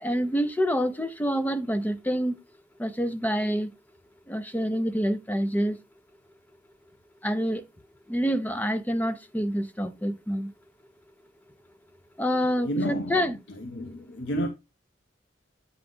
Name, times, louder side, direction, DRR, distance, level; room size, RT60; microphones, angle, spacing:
voice 1, 0.0-2.3 2.8-3.7 4.3-5.8 7.2-7.6 8.1-10.5 12.2-13.4, equal, 10° left, 0.5 m, -27 dB
voice 2, 12.6-13.2 13.6-14.5, equal, 80° left, 0.7 m, -30 dB
8.8 x 3.8 x 3.6 m
head